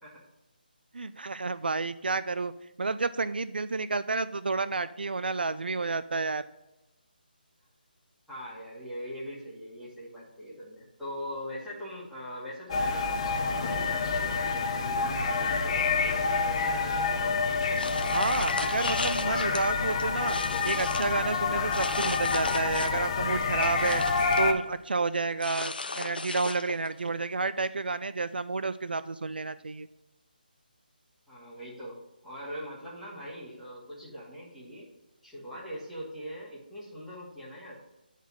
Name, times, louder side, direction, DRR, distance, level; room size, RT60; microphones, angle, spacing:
voice 1, 0.9-2.5 2.8-6.4 18.1-20.4 20.6-24.0 24.4-29.9, right 3 dB, 75° right, 14 dB, 0.4 m, -30 dB
voice 2, 8.3-14.4 14.8-17.3 31.3-32.0 32.2-34.9 35.2-37.8, equal, ahead, -11 dB, 2.3 m, -42 dB
sound 1, 12.7-24.5, left 4 dB, 35° left, 0.8 m, -28 dB
sound 2, 17.8-19.6 20.0-21.1 21.7-23.1 23.4-24.5 25.4-26.9, left 3 dB, 70° left, 0.6 m, -36 dB
9.1 x 4.1 x 6.1 m, 0.98 s
figure-of-eight pair, 155°, 5 cm